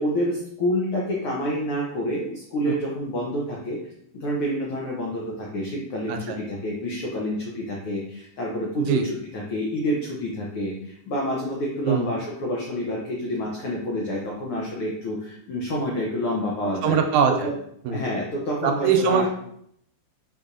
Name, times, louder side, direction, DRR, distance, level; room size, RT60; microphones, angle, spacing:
voice 1, 0.0-3.8 4.1-17.0 17.4-17.5 17.9-19.3, equal, 80° left, -3 dB, 1.2 m, -28 dB
voice 2, 6.1-6.4 8.8-9.1 11.9-12.1 16.8-17.5 17.9-18.0 18.6-19.3, right 7 dB, 80° right, 4 dB, 1.9 m, -22 dB
4.9 x 4.1 x 2.6 m, 0.70 s
omnidirectional pair, 3.5 m